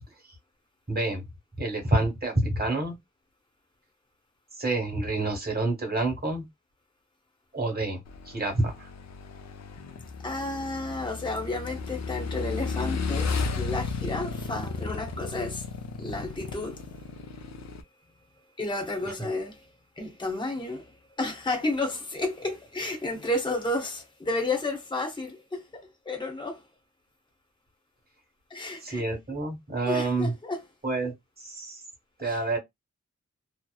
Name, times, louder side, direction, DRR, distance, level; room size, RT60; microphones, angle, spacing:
voice 1, 0.9-1.2 1.6-2.9 4.6-6.5 7.5-8.9 28.8-30.3 30.8-31.8 32.2-32.6, right 2 dB, 30° right, 1.3 m, -28 dB
Motorcycle / Engine, 8.1-17.8, left 4 dB, 65° left, 0.5 m, -34 dB
voice 2, 10.2-15.7 16.0-16.8 18.6-19.7 20.0-20.9 21.2-26.6 28.5-29.0 29.9-30.6 32.2-32.4, left 2 dB, 15° left, 0.8 m, -32 dB
2.9 x 2.0 x 2.2 m
wide cardioid pair, 115°, 29 cm